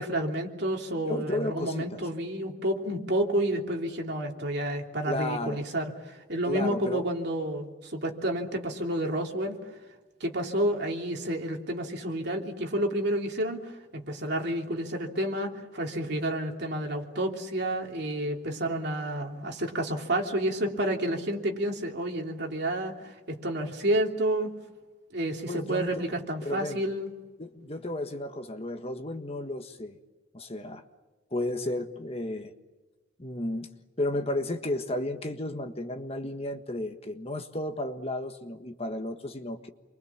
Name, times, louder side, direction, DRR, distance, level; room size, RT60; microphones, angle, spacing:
voice 1, 0.0-9.6 10.2-24.5 25.1-27.1, right 1 dB, 60° right, 1 dB, 3.2 m, -30 dB
voice 2, 1.0-2.0 5.0-5.6 6.4-7.0 25.5-26.0 26.4-26.8 27.4-30.0 30.3-30.8 31.3-32.5 33.2-33.7 34.0-39.7, left 1 dB, 30° left, 6 dB, 1.5 m, -33 dB
28.5 x 23.5 x 7.3 m, 1.2 s
head